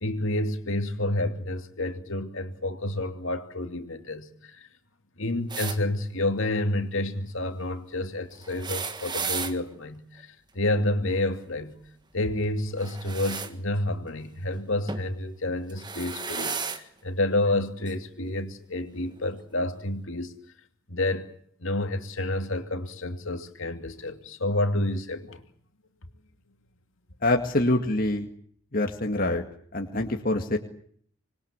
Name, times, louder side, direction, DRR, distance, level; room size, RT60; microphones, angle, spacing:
voice 1, 0.0-4.7 5.2-11.8 12.1-20.3 20.9-21.3 21.6-25.4, left 1 dB, 65° left, 2.6 m, -29 dB
sound 1, 5.5-5.8 8.4-9.5 12.8-13.5 14.9-15.1 15.7-16.8 17.9-18.0 19.2-19.3, right 5 dB, 20° right, 1.5 m, -33 dB
voice 2, 27.2-28.3 28.7-29.4 29.7-30.6, left 2 dB, 40° left, 2.1 m, -25 dB
26.5 x 21.0 x 8.3 m
head